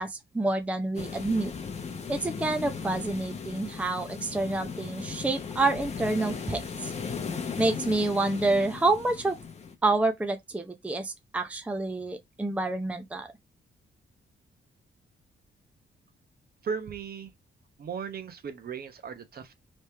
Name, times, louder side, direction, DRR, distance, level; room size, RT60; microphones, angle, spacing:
voice 1, 0.0-1.5 2.1-6.9 7.6-9.4 9.8-13.3, right 2 dB, 5° right, 0.6 m, -28 dB
sound 1, 0.9-9.7, left 5 dB, 35° left, 0.8 m, -37 dB
voice 2, 16.6-17.3 17.8-19.5, right 6 dB, 50° right, 0.9 m, -36 dB
3.5 x 3.2 x 4.3 m
wide cardioid pair, 150°, 20 cm